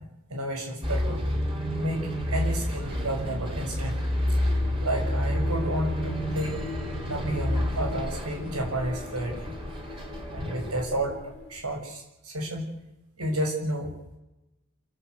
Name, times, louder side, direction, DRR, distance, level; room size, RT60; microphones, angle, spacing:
voice 1, 0.3-1.2 1.8-3.9 4.8-6.6 7.1-9.6 10.3-11.2 11.5-12.7 13.2-13.9, right 1 dB, 85° right, 2 dB, 6.7 m, -31 dB
Bus, 0.8-10.8, equal, 25° right, 4.2 m, -29 dB
sound 1, 4.1-11.9, left 3 dB, 55° left, 2.6 m, -41 dB
28.0 x 12.5 x 8.4 m, 0.94 s
head